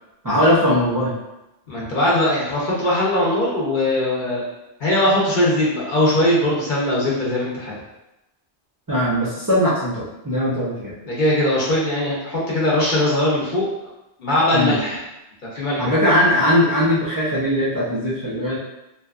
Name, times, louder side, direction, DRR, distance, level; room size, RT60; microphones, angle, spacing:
voice 1, 0.2-1.1 8.9-10.9 14.5-14.8 15.8-18.6, equal, 30° right, -9 dB, 0.4 m, -19 dB
voice 2, 1.7-4.5 4.8-7.7 11.0-13.6 14.2-15.0 15.5-16.0, left 1 dB, 50° left, -6 dB, 0.8 m, -20 dB
2.7 x 2.3 x 2.3 m, 0.92 s
omnidirectional pair, 1.1 m